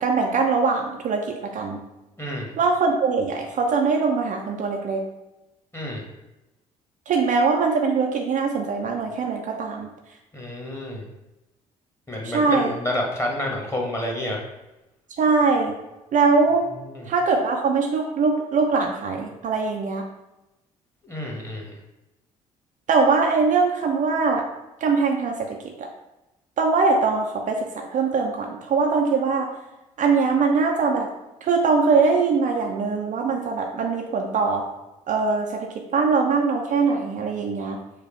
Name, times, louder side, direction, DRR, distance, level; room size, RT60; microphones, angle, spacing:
voice 1, 0.0-1.8 2.6-5.0 7.1-9.9 12.2-12.7 15.2-15.7 16.1-16.7 17.1-20.0 22.9-24.5 24.8-25.9 26.6-29.5 30.0-31.1 31.4-34.7 35.1-37.8, right 4 dB, 45° right, 1 dB, 0.6 m, -22 dB
voice 2, 10.3-11.0 12.1-14.4 16.8-17.0 21.0-21.7, left 1 dB, 15° left, -1 dB, 1.5 m, -29 dB
5.0 x 2.2 x 4.5 m, 0.97 s
figure-of-eight pair, 50°, 19 cm